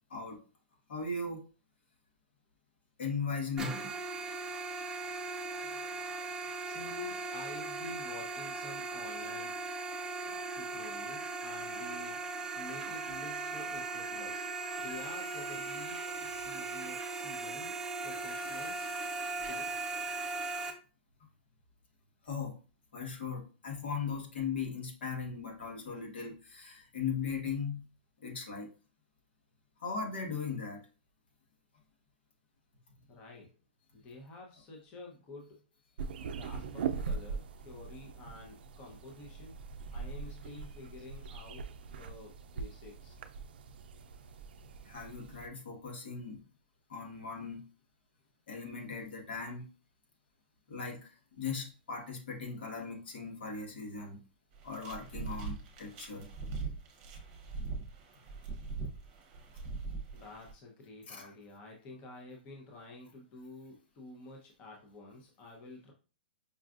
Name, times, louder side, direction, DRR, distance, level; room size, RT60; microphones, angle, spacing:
voice 1, 0.9-1.4 3.0-3.9 10.3-10.4 22.2-22.5 22.9-27.8 28.2-28.7 29.8-30.8 44.8-46.4 46.9-47.6 48.5-49.7 50.7-54.2 54.6-56.3 61.1-61.3, left 5 dB, 75° left, 0 dB, 1.4 m, -38 dB
sound 1, 3.6-20.7, right 3 dB, 10° right, 0.4 m, -38 dB
voice 2, 6.7-9.5 10.5-14.4 14.8-16.0 16.3-17.8 18.0-18.9 19.4-19.7 33.1-33.5 33.9-35.6 36.2-39.6 39.9-43.2 60.1-65.9, left 2 dB, 25° left, 0 dB, 0.8 m, -49 dB
sound 2, 36.0-45.5, right 5 dB, 65° right, 0.4 m, -41 dB
sound 3, 54.5-60.5, right 4 dB, 35° right, 0.9 m, -41 dB
5.3 x 2.4 x 2.4 m, 0.36 s
hypercardioid pair, 155°, 6 cm